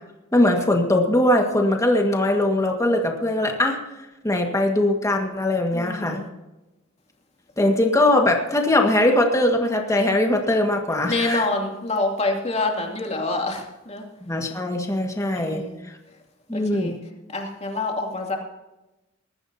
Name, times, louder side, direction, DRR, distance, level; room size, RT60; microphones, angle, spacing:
voice 1, 0.3-3.8 4.2-6.2 7.6-11.5 14.3-15.6 16.5-16.9, left 1 dB, 15° left, 2 dB, 1.7 m, -21 dB
voice 2, 5.7-6.3 11.0-14.0 15.3-15.8 16.5-16.9 17.3-18.4, left 2 dB, 30° left, 1 dB, 2.7 m, -27 dB
20.0 x 14.0 x 2.8 m, 1.0 s
head